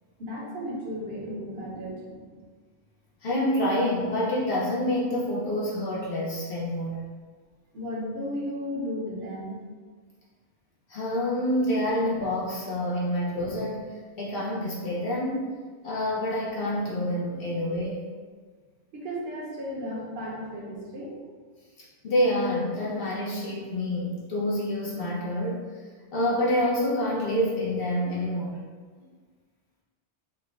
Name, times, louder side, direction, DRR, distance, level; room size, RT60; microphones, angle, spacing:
voice 1, 0.2-2.4 7.7-9.6 18.9-21.2, equal, 65° right, -5 dB, 1.0 m, -34 dB
voice 2, 3.2-7.0 10.9-15.4 15.8-18.0 22.0-25.8 26.1-28.6, left 1 dB, 60° left, -6 dB, 0.9 m, -27 dB
4.4 x 2.2 x 2.4 m, 1.5 s
omnidirectional pair, 1.2 m